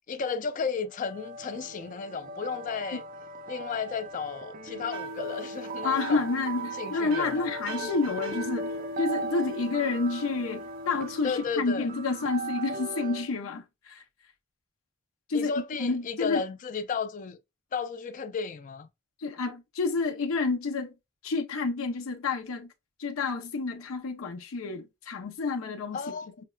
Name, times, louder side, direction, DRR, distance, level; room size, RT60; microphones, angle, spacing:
voice 1, 0.1-3.0 3.5-6.2 6.8-7.5 11.2-11.9 15.3-17.4 17.7-18.9 25.9-26.3, left 5 dB, 40° left, 0.3 m, -33 dB
sound 1, 0.9-13.3, right 1 dB, 40° right, 0.4 m, -38 dB
sound 2, 4.9-9.8, right 5 dB, 65° right, 0.7 m, -42 dB
voice 2, 5.8-8.7 9.0-14.0 15.3-15.5 15.8-16.4 19.2-20.9 21.2-22.7 23.0-26.1, left 4 dB, 85° left, 0.6 m, -29 dB
5.7 x 2.1 x 2.3 m
head